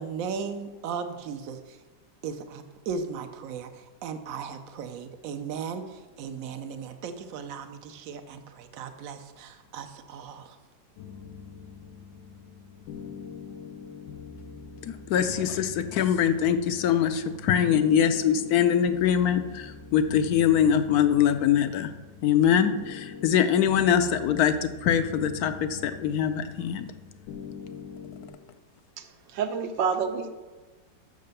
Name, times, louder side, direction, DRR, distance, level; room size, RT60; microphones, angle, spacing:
voice 1, 0.0-1.8 2.2-10.6, right 6 dB, 60° right, 8 dB, 0.9 m, -37 dB
sound 1, 11.0-28.3, left 6 dB, 85° left, 1.5 m, -43 dB
voice 2, 14.8-21.9 22.2-26.9, left 9 dB, 70° left, 10 dB, 0.9 m, -23 dB
voice 3, 29.3-30.3, right 6 dB, 80° right, 7 dB, 1.4 m, -27 dB
6.6 x 6.0 x 6.7 m, 1.2 s
omnidirectional pair, 2.0 m